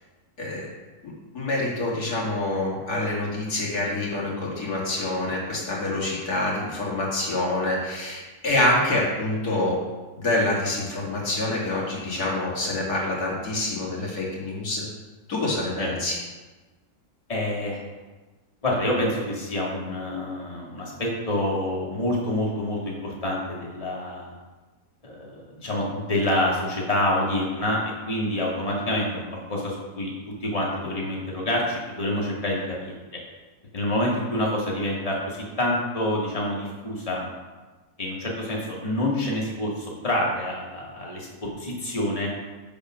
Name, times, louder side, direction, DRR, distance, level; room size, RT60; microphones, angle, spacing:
voice 1, 0.4-0.7 1.0-9.8 10.1-14.8 15.3-16.2, left 2 dB, 85° left, -4 dB, 2.7 m, -26 dB
voice 2, 17.3-17.8 18.6-24.3 25.0-27.8 28.1-29.2 29.5-30.1 30.4-33.0 33.7-37.2 38.0-42.3, left 1 dB, 25° left, -4 dB, 2.0 m, -27 dB
9.8 x 4.8 x 6.2 m, 1.2 s
omnidirectional pair, 1.6 m